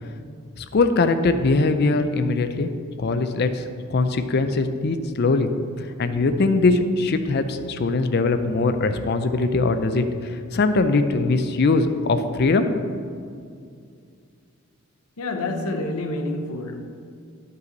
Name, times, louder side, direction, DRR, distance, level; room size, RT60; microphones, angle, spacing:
voice 1, 0.6-2.7 3.0-3.6 3.9-5.5 6.0-12.6, left 3 dB, 50° left, 9 dB, 0.4 m, -21 dB
voice 2, 15.2-16.8, left 2 dB, 85° left, 5 dB, 0.8 m, -28 dB
9.7 x 5.4 x 4.0 m, 2.3 s
head